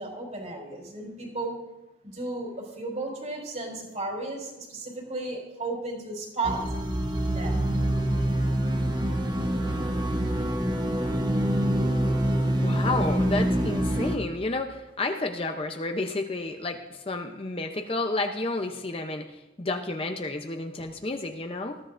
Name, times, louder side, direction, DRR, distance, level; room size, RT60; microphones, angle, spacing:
voice 1, 0.0-1.5 2.0-6.6 7.3-7.7, right 2 dB, 40° right, 0 dB, 4.7 m, -34 dB
sound 1, 6.4-14.2, right 1 dB, 20° right, 1.0 m, -25 dB
voice 2, 12.6-21.8, left 2 dB, 30° left, 4 dB, 0.6 m, -31 dB
20.0 x 15.0 x 2.5 m, 1.0 s
head